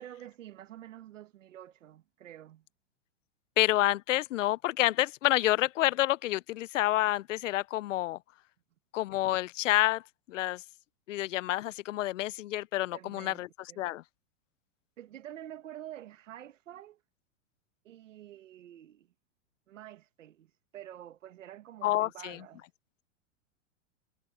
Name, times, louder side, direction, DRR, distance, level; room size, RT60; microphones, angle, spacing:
voice 1, 0.0-2.7 12.9-13.4 13.7-13.8 15.0-17.0 17.8-19.1 19.7-22.7, right 12 dB, 90° right, 1.8 m, -48 dB
voice 2, 3.6-8.2 8.9-10.0 10.3-10.6 11.1-13.5 13.8-14.0 21.8-22.4, left 15 dB, 85° left, 0.6 m, -28 dB
supercardioid pair, 150°, 37 cm